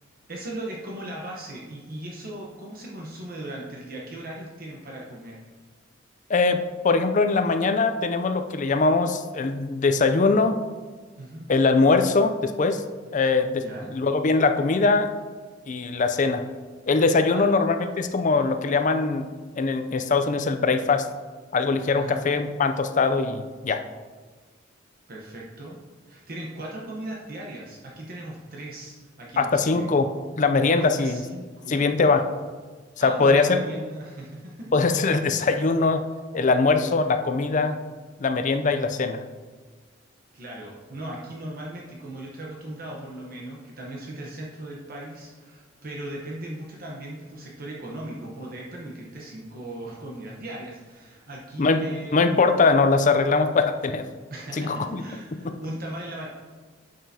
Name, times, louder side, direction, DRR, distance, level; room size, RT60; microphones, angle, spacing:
voice 1, 0.3-5.4 11.2-11.5 13.5-13.9 17.3-17.5 21.9-22.3 25.1-25.8 26.1-29.9 30.7-32.0 33.0-34.7 35.5-35.7 40.3-52.6 54.3-56.3, right 1 dB, 50° right, -3 dB, 1.0 m, -38 dB
voice 2, 6.3-10.6 11.5-12.8 13.1-13.6 13.9-15.1 15.7-16.4 16.9-19.3 19.6-21.1 21.5-23.8 29.4-31.2 31.7-32.3 33.0-33.6 34.7-36.0 36.3-37.8 38.2-39.2 51.6-51.8 52.1-54.1 54.6-55.0 55.4-55.5, left 4 dB, 40° left, 8 dB, 0.5 m, -22 dB
9.2 x 6.7 x 2.8 m, 1.4 s
head